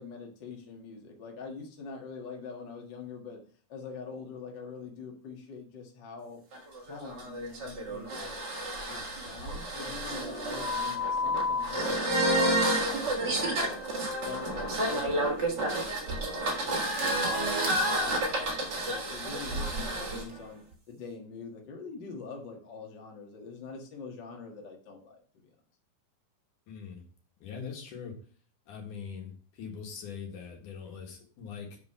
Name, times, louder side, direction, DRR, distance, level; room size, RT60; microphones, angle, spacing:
voice 1, 0.0-3.4 3.7-6.4 6.8-8.4 8.9-13.8 14.2-17.6 18.0-20.6 20.9-25.5, left 4 dB, 40° left, 0 dB, 1.8 m, -44 dB
sound 1, 6.5-20.2, right 1 dB, 40° right, 1.8 m, -30 dB
voice 2, 26.7-27.0 27.4-28.2 28.7-31.8, left 6 dB, 70° left, 2 dB, 3.1 m, -42 dB
8.0 x 5.3 x 5.6 m, 0.43 s
omnidirectional pair, 3.9 m